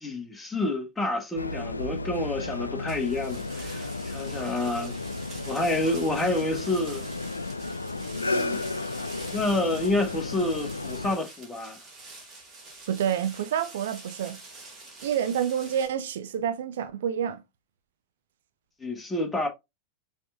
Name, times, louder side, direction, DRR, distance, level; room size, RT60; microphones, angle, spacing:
voice 1, 0.0-4.9 5.5-7.0 8.2-8.6 9.3-11.8 18.8-19.5, left 2 dB, 10° left, 1.3 m, -28 dB
sound 1, 1.4-11.2, left 2 dB, 80° left, 0.4 m, -33 dB
sound 2, 2.9-15.9, right 2 dB, 20° right, 2.1 m, -46 dB
voice 2, 12.9-14.4 15.0-17.4, right 9 dB, 60° right, 0.5 m, -28 dB
5.9 x 3.5 x 2.4 m
figure-of-eight pair, 90°, 0 cm